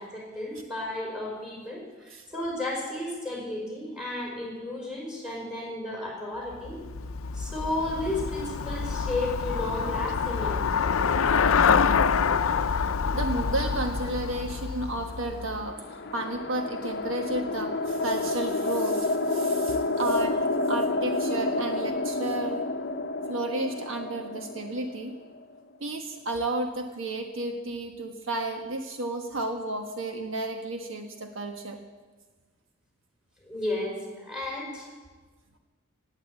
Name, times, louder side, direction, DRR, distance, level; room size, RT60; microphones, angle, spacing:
voice 1, 0.0-6.8 7.3-10.9 33.4-34.9, left 2 dB, 5° right, -2 dB, 5.1 m, -33 dB
Traffic noise roadway noise / Bicycle, 6.5-15.7, left 6 dB, 85° left, 0.6 m, -26 dB
voice 2, 13.1-20.3 20.7-22.6 23.3-25.2 25.8-31.8, right 2 dB, 70° right, 4 dB, 1.3 m, -32 dB
sound 1, 15.2-25.6, left 2 dB, 55° left, 0.7 m, -29 dB
18.0 x 9.1 x 8.3 m, 1.3 s
head